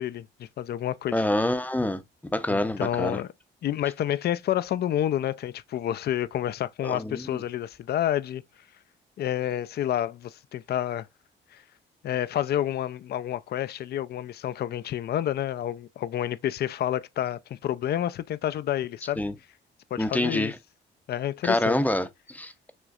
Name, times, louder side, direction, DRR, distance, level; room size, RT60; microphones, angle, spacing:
voice 1, 0.0-1.1 2.5-3.3 3.6-8.4 9.2-11.1 11.5-11.6 12.0-19.2 19.9-20.5 21.1-21.8, left 11 dB, 55° left, 0.4 m, -29 dB
voice 2, 1.1-2.0 2.3-3.2 6.8-7.4 19.2-19.3 20.0-20.6 21.4-22.5, left 1 dB, 10° left, 0.6 m, -26 dB
6.3 x 3.0 x 2.3 m
cardioid pair, 90°, 20 cm